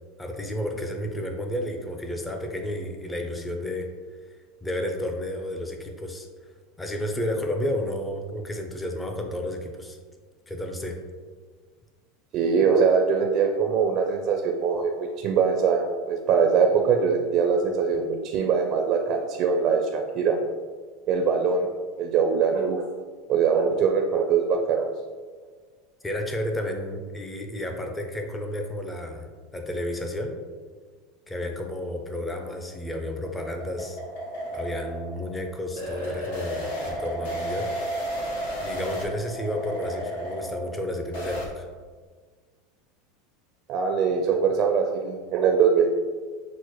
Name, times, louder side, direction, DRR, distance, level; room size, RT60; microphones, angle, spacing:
voice 1, 0.2-3.9 4.6-6.3 6.8-10.0 10.5-11.0 26.0-30.3 31.3-34.0 34.5-37.7 38.6-41.7, left 1 dB, 10° left, 3 dB, 0.5 m, -31 dB
voice 2, 12.3-20.4 21.1-21.7 22.0-22.8 23.3-24.9 43.7-45.9, right 6 dB, 45° right, 3 dB, 0.4 m, -22 dB
sound 1, 32.9-41.5, equal, 80° left, 1.1 m, -33 dB
6.1 x 2.1 x 3.0 m, 1.5 s
supercardioid pair, 125°, 0 cm